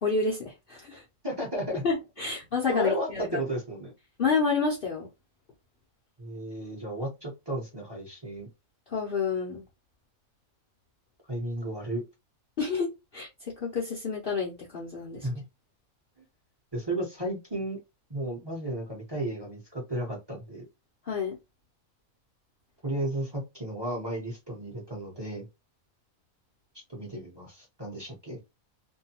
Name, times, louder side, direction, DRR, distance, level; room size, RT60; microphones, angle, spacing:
voice 1, 0.0-1.0 1.8-3.4 4.2-5.1 8.9-9.6 12.6-13.3 13.6-15.3 21.1-21.4, left 5 dB, 50° left, 0.7 m, -29 dB
voice 2, 1.2-1.8 2.7-3.9 6.2-8.5 11.3-12.0 15.2-15.4 16.7-17.8 18.1-20.6 22.8-25.5 26.9-28.4, right 1 dB, 20° right, 0.9 m, -33 dB
2.6 x 2.3 x 2.8 m
omnidirectional pair, 1.5 m